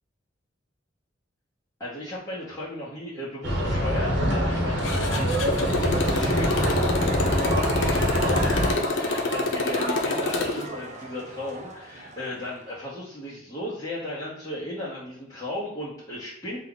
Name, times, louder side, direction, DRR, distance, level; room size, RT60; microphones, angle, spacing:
voice 1, 1.8-16.6, left 1 dB, 15° left, -10 dB, 0.9 m, -35 dB
sound 1, 3.4-8.7, equal, 65° right, 1.0 m, -25 dB
Motorcycle, 4.8-10.7, left 3 dB, 90° left, 0.6 m, -27 dB
sound 2, 5.9-12.8, right 2 dB, 40° right, 0.6 m, -35 dB
4.2 x 2.4 x 3.8 m, 0.82 s
head